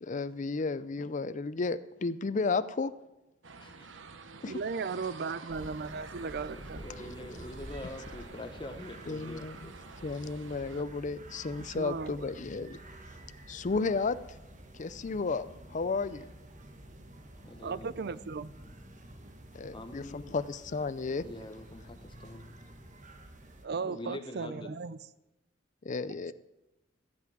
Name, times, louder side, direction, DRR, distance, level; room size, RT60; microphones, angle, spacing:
voice 1, 0.0-2.9 4.4-4.5 9.1-9.6 10.0-12.8 13.5-14.2 14.8-16.2 19.5-21.2 25.8-26.3, left 4 dB, 40° left, 15 dB, 0.5 m, -33 dB
sound 1, 3.4-10.8, right 4 dB, 90° right, 1.0 m, -49 dB
voice 2, 3.6-3.9 6.5-9.8 17.4-17.9 19.7-20.4 21.2-22.4 23.8-24.8, left 1 dB, 25° left, 6 dB, 1.0 m, -45 dB
voice 3, 4.5-6.8 11.8-12.2 17.6-18.5 19.6-19.7 23.6-25.0, right 4 dB, 60° right, 17 dB, 0.5 m, -36 dB
sound 2, 5.5-23.7, right 1 dB, 40° right, 1.4 m, -49 dB
14.0 x 5.9 x 9.1 m, 0.97 s
head